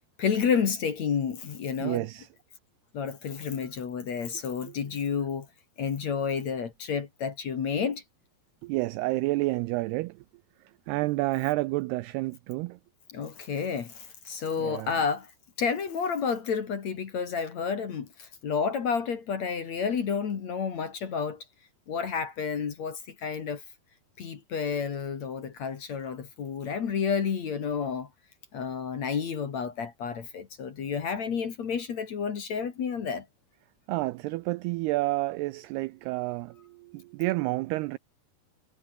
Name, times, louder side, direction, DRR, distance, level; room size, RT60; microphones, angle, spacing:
voice 1, 0.2-2.0 2.9-5.5 5.8-8.0 13.1-15.3 15.6-21.4 21.9-23.6 24.2-28.1 28.5-33.2, left 6 dB, 45° left, 2.8 m, -30 dB
voice 2, 1.8-2.3 4.6-4.7 8.6-10.2 10.9-12.8 14.6-14.9 33.9-38.0, right 20 dB, 85° right, 2.3 m, -30 dB
omnidirectional pair, 5.2 m